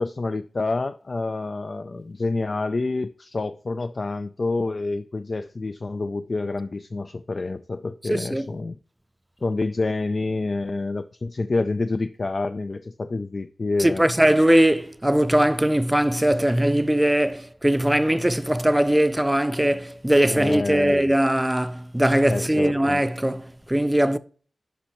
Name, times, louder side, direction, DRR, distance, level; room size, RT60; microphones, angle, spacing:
voice 1, 0.0-8.8 9.4-14.0 20.3-21.1 22.2-23.0, left 3 dB, 55° left, 0.4 m, -28 dB
voice 2, 8.1-8.5 13.8-24.2, right 1 dB, 10° right, 0.5 m, -20 dB
10.0 x 5.3 x 3.0 m
cardioid pair, 45°, 0 cm